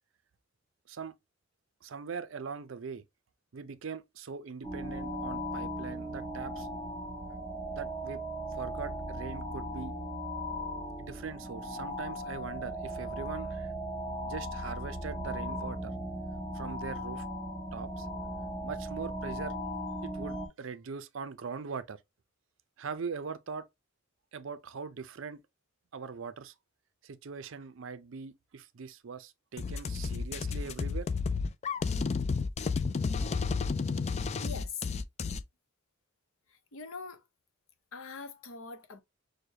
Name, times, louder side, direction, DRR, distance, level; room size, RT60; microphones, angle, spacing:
voice 1, 1.8-3.0 3.5-6.7 7.7-8.2 8.5-9.9 11.0-13.7 14.2-16.0 16.5-17.2 17.7-18.1 18.6-19.6 20.0-22.0 22.8-23.7 24.3-25.4 25.9-26.5 27.0-31.1, right 5 dB, 70° right, 0.5 m, -41 dB
sound 1, 4.6-20.5, equal, 5° left, 1.2 m, -37 dB
sound 2, 29.6-35.4, left 4 dB, 35° left, 0.3 m, -31 dB
voice 2, 34.4-34.9 36.5-37.3 37.9-39.0, left 4 dB, 90° left, 0.8 m, -43 dB
6.4 x 2.2 x 2.8 m
head